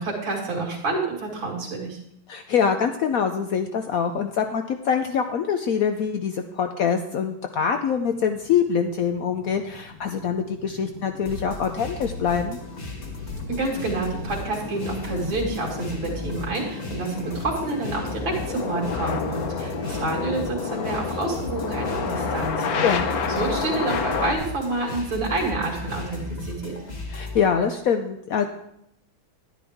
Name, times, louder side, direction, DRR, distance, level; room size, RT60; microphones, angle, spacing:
voice 1, 0.0-2.0 13.5-22.9 23.3-26.7, right 2 dB, 70° right, -2 dB, 2.8 m, -28 dB
voice 2, 2.3-12.6 22.8-23.1 27.1-28.5, left 7 dB, 80° left, 6 dB, 0.7 m, -24 dB
sound 1, 8.2-24.4, left 5 dB, 60° left, 1.1 m, -31 dB
sound 2, 11.2-27.4, left 1 dB, 35° left, 1.8 m, -36 dB
11.0 x 9.8 x 3.6 m, 0.76 s
omnidirectional pair, 2.2 m